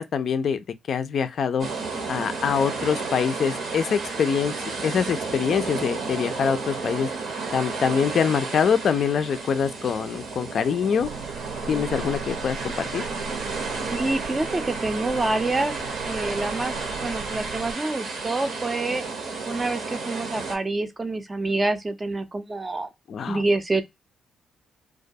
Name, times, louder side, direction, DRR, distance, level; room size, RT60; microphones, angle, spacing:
voice 1, 0.0-1.7 2.1-7.1 7.5-11.1 11.7-13.0 23.1-23.4, left 7 dB, 55° left, 0.3 m, -24 dB
sound 1, 1.6-20.6, right 4 dB, 65° right, 0.9 m, -32 dB
sound 2, 11.0-17.7, right 5 dB, 80° right, 0.3 m, -40 dB
voice 2, 13.9-15.8 16.0-19.0 19.5-22.9 23.3-23.8, right 2 dB, 20° right, 0.4 m, -27 dB
2.3 x 2.1 x 2.5 m
cardioid pair, 90°, 0 cm